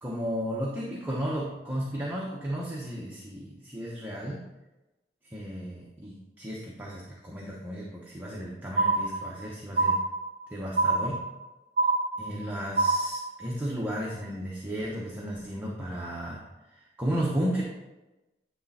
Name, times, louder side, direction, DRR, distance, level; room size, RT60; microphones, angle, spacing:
voice 1, 0.0-4.4 5.2-10.0 10.5-11.2 12.2-16.4 16.8-17.6, equal, 10° right, -4 dB, 0.8 m, -34 dB
sound 1, 8.8-9.4 9.8-10.4 10.8-11.4 11.8-12.4 12.8-13.4, right 3 dB, 45° right, 0.8 m, -25 dB
9.5 x 3.2 x 4.2 m, 1.0 s
head